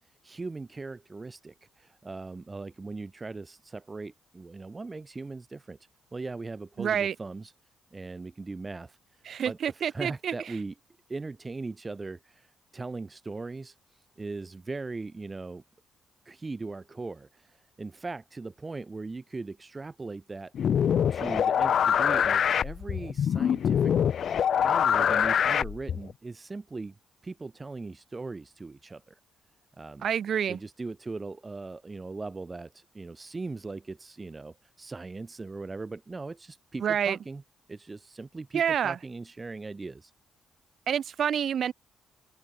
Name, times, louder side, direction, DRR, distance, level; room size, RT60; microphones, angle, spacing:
voice 1, 0.2-5.8 6.1-7.5 7.9-9.0 9.4-10.7 11.1-13.8 14.2-15.6 16.3-20.5 21.1-23.9 24.6-26.9 27.2-29.2 29.8-30.1 30.5-37.4 37.7-40.1, right 3 dB, 25° right, 1.7 m, -39 dB
voice 2, 6.8-7.1 9.3-10.3 30.0-30.6 36.8-37.2 38.5-39.0 40.9-41.7, right 8 dB, 60° right, 0.5 m, -27 dB
sound 1, 20.5-26.1, left 8 dB, 60° left, 0.4 m, -24 dB
cardioid pair, 90°, 0 cm